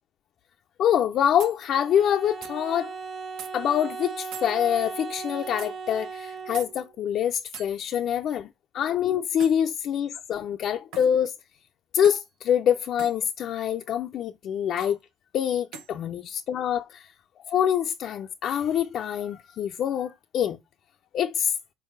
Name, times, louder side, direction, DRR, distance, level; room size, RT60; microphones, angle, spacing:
voice 1, 0.8-2.9 3.5-8.5 8.7-11.3 11.9-15.0 15.3-17.1 17.5-20.6 21.1-21.6, left 9 dB, 65° left, 0.5 m, -25 dB
sound 1, 0.9-1.0 1.4-1.6 2.4-2.6 3.4-3.5 4.3-4.5 5.6-5.7 6.5-6.7 7.5-7.7 9.4-9.6 10.9-11.1 12.0-12.3 13.0-13.2 14.8-14.9 15.7-15.9, right 7 dB, 75° right, 1.1 m, -41 dB
Bowed string instrument, 1.7-6.9, right 5 dB, 60° right, 1.6 m, -37 dB
5.5 x 4.7 x 4.5 m
supercardioid pair, 75°, 0 cm